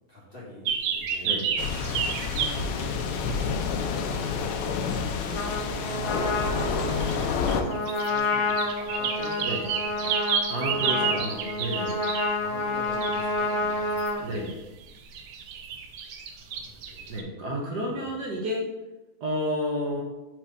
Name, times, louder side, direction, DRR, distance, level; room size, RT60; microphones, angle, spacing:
voice 1, 0.1-1.4 1.9-10.2 10.6-11.4 11.7-11.8 12.1-14.5 16.4-17.3 17.6-18.3, left 1 dB, 30° left, -6 dB, 1.5 m, -43 dB
sound 1, 0.7-3.4 4.1-4.5 6.0-6.1 6.4-12.4 12.8-14.5 14.8-17.2, right 7 dB, 80° right, 1.4 m, -31 dB
sound 2, 1.6-7.6, left 5 dB, 85° left, 1.5 m, -29 dB
Trumpet, 5.3-14.2, left 2 dB, 60° left, 0.7 m, -29 dB
voice 2, 10.5-12.0 14.2-14.6 17.1-18.7 19.2-20.0, equal, 60° right, -1 dB, 1.3 m, -31 dB
4.5 x 4.5 x 5.1 m, 1.1 s
omnidirectional pair, 2.3 m